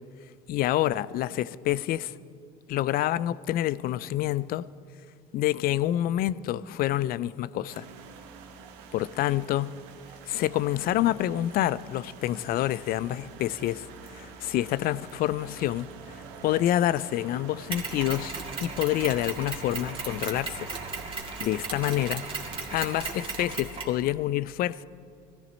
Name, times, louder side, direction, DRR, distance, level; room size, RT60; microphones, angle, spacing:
voice 1, 0.5-2.1 2.7-4.7 5.3-7.9 8.9-9.8 10.3-13.9 14.1-15.9 16.4-20.7 21.4-22.2 22.7-24.8, left 13 dB, 55° left, 0.4 m, -27 dB
sound 1, 7.7-22.9, right 6 dB, 80° right, 1.3 m, -47 dB
Mechanisms, 17.7-24.0, right 4 dB, 30° right, 2.5 m, -36 dB
16.5 x 13.5 x 4.1 m
supercardioid pair, 95°, 18 cm